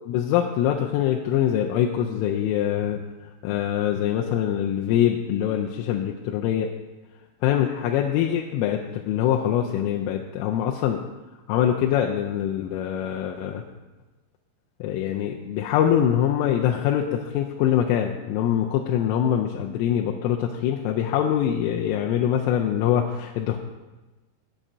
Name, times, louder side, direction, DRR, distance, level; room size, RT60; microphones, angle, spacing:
voice 1, 0.0-3.0 3.4-6.7 7.4-11.0 11.5-13.6 14.8-23.6, left 10 dB, 85° left, 1 dB, 3.1 m, -24 dB
18.5 x 7.5 x 2.7 m, 1.1 s
omnidirectional pair, 5.9 m